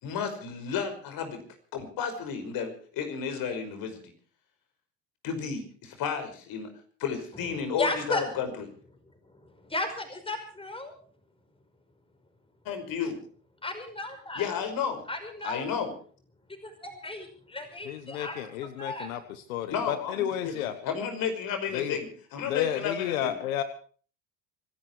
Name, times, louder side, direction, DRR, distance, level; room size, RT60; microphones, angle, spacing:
voice 1, 0.0-1.4 1.7-4.0 5.2-6.7 7.0-8.5 12.7-13.2 14.4-15.0 15.4-16.0 19.7-20.6 20.8-23.4, left 7 dB, 55° left, 7 dB, 5.5 m, -32 dB
voice 2, 7.4-8.2 9.3-10.9 13.6-14.5 15.1-15.6 16.6-19.2, left 2 dB, 15° left, 7 dB, 5.4 m, -35 dB
voice 3, 17.9-19.2 19.5-20.7 21.7-22.0 22.5-23.6, left 11 dB, 85° left, 11 dB, 1.4 m, -31 dB
25.5 x 12.0 x 4.7 m, 0.43 s
hypercardioid pair, 85°, 40 cm